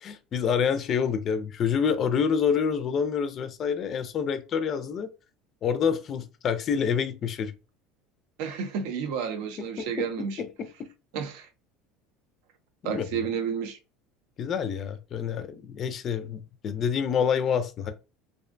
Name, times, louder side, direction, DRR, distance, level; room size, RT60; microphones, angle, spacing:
voice 1, 0.0-5.1 5.6-7.5 9.8-10.1 10.4-10.9 12.8-13.3 14.4-17.9, left 7 dB, 40° left, 0.4 m, -27 dB
voice 2, 8.4-10.4 11.1-11.5 12.8-13.8, right 7 dB, 75° right, 0.5 m, -31 dB
2.5 x 2.1 x 2.5 m
supercardioid pair, 110°, 0 cm